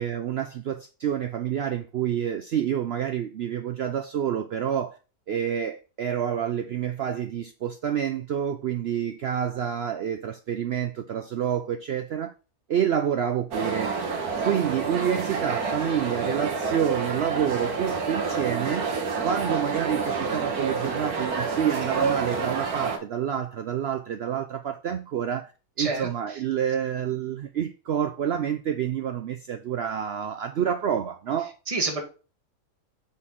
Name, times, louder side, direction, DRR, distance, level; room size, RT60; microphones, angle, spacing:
voice 1, 0.0-5.0 5.3-12.3 12.7-13.9 14.4-18.9 19.2-25.5 25.8-31.6, right 9 dB, 65° right, 0.6 m, -28 dB
sound 1, 13.5-23.0, right 5 dB, 85° right, 1.7 m, -28 dB
voice 2, 25.8-26.4 31.7-32.0, right 3 dB, 25° right, 1.4 m, -29 dB
7.5 x 4.2 x 3.6 m
omnidirectional pair, 1.5 m